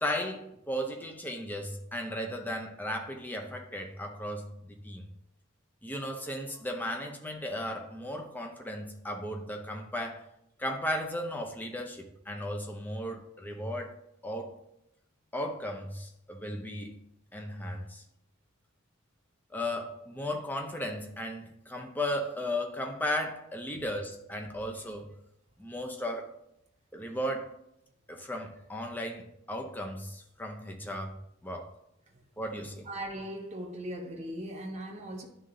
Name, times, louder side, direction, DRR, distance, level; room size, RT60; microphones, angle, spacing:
voice 1, 0.0-5.1 5.8-10.2 10.6-13.9 14.2-14.6 15.3-17.0 17.3-18.0 19.5-25.1 25.6-26.4 26.9-27.5 28.1-31.7 32.4-32.9, left 1 dB, 10° left, 0.6 m, -35 dB
voice 2, 32.8-35.3, right 1 dB, 30° right, 1.1 m, -38 dB
11.0 x 3.7 x 2.7 m
head